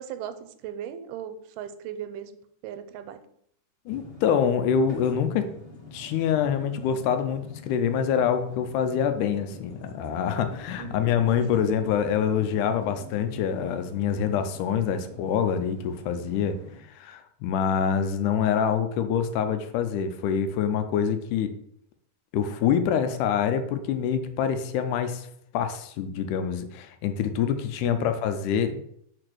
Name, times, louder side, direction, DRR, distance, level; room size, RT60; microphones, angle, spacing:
voice 1, 0.0-2.4 2.6-3.2 10.8-11.1 11.5-11.7 27.8-28.2, right 10 dB, 90° right, 10 dB, 2.2 m, -38 dB
sound 1, 3.8-16.8, left 1 dB, 30° left, 1.1 m, -45 dB
voice 2, 3.9-5.5 5.9-16.6 17.0-21.5 22.3-25.3 25.5-28.8, left 8 dB, 80° left, 8 dB, 2.0 m, -26 dB
4.9 x 4.3 x 6.0 m, 0.69 s
omnidirectional pair, 3.8 m